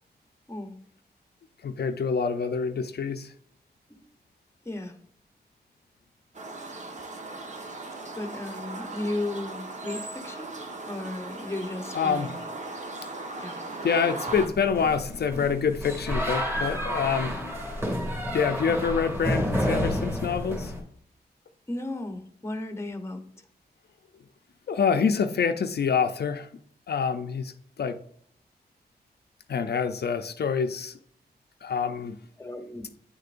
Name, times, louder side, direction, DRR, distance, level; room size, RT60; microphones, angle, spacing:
voice 1, 1.6-3.3 11.9-12.4 13.8-17.4 18.3-20.7 24.7-26.5 26.9-27.5 27.8-28.0 29.5-30.9 31.6-32.2, left 6 dB, 70° left, 7 dB, 0.6 m, -26 dB
voice 2, 4.6-5.0 8.2-10.6 10.9-12.4 13.4-13.6 21.7-23.2 32.4-32.9, left 2 dB, 15° left, 6 dB, 0.9 m, -35 dB
sound 1, 6.3-14.5, right 2 dB, 45° right, 1.1 m, -38 dB
sound 2, 14.3-20.8, equal, 15° right, 2.2 m, -30 dB
9.3 x 6.6 x 2.5 m, 0.63 s
wide cardioid pair, 135°, 17 cm